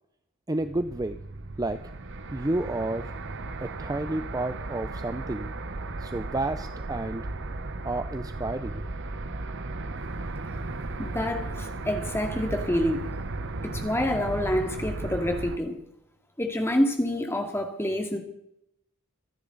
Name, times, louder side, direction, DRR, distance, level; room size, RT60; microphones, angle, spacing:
voice 1, 0.5-1.2 1.6-1.8 2.3-3.1 3.6-5.5 6.0-7.3 7.8-8.8, right 2 dB, 15° right, 10 dB, 0.5 m, -30 dB
sound 1, 0.6-15.6, right 2 dB, 55° right, 1.1 m, -35 dB
voice 2, 11.0-13.0 13.6-15.8 16.4-18.2, left 1 dB, 10° left, 4 dB, 2.3 m, -27 dB
26.5 x 10.0 x 4.0 m, 0.79 s
head